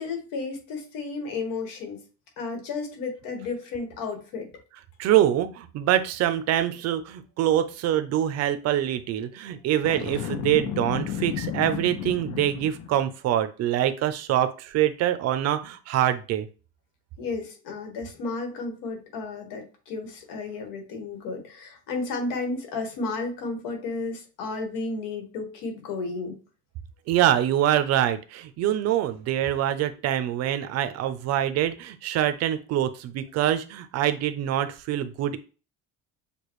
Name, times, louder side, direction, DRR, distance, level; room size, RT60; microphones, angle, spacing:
voice 1, 0.0-2.0 2.4-4.5 17.2-26.4, left 3 dB, 85° left, 4 dB, 1.6 m, -33 dB
voice 2, 5.0-16.5 27.1-35.4, right 11 dB, 50° right, 11 dB, 0.5 m, -25 dB
Boom, 9.8-13.0, left 9 dB, 60° left, 0.7 m, -32 dB
6.7 x 2.3 x 3.1 m, 0.35 s
cardioid pair, 165°, 33 cm